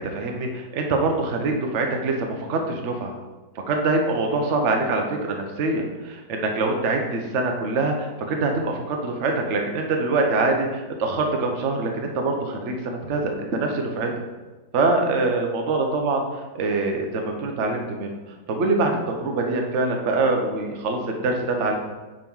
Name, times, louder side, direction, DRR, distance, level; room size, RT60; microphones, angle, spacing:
voice 1, 0.1-3.2 3.7-14.1 14.7-18.2 18.5-21.8, right 3 dB, 45° right, 2 dB, 1.0 m, -24 dB
5.4 x 5.2 x 5.5 m, 1.2 s
omnidirectional pair, 2.2 m